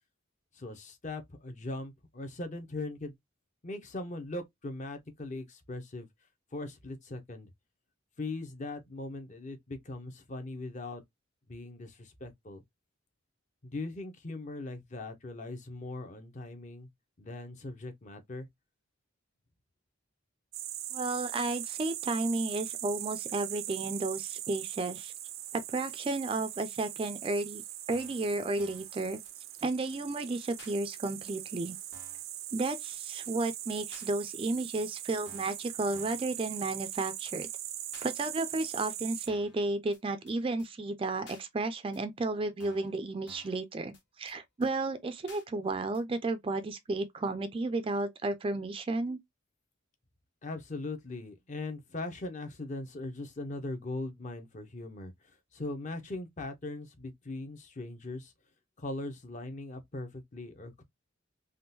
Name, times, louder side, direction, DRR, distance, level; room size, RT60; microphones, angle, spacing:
voice 1, 0.5-3.1 3.6-6.1 6.5-7.5 8.2-11.0 11.5-12.6 13.6-16.9 17.2-18.5 50.4-58.3 58.8-60.8, left 2 dB, 40° left, 0.6 m, -40 dB
sound 1, 20.5-39.3, right 13 dB, 90° right, 0.5 m, -41 dB
voice 2, 20.9-25.1 25.5-27.6 27.9-29.2 29.6-31.8 32.5-37.5 38.0-49.2, right 2 dB, 25° right, 0.3 m, -33 dB
sound 2, 27.2-27.3 27.9-28.2 28.6-28.9 29.2-29.3 29.6-29.7 29.9-30.0 30.6-30.7 31.2-31.3 31.9-32.2 32.6-32.7 32.9-33.0 33.2-33.3 33.9-34.1 34.6-34.7 35.2-35.6 35.9-36.3 36.6-36.7 36.9-37.0 37.3-37.4 37.9-38.1 38.6-38.7 39.3-39.6 39.9-40.0 40.3-40.4 40.6-40.7 41.3-41.4 41.9-42.0 42.6-42.9 43.3-43.6 43.9-44.0 44.3-44.4 44.6-44.7 45.3-45.4 45.9-46.0, left 4 dB, 60° left, 1.2 m, -54 dB
3.6 x 2.2 x 2.6 m
head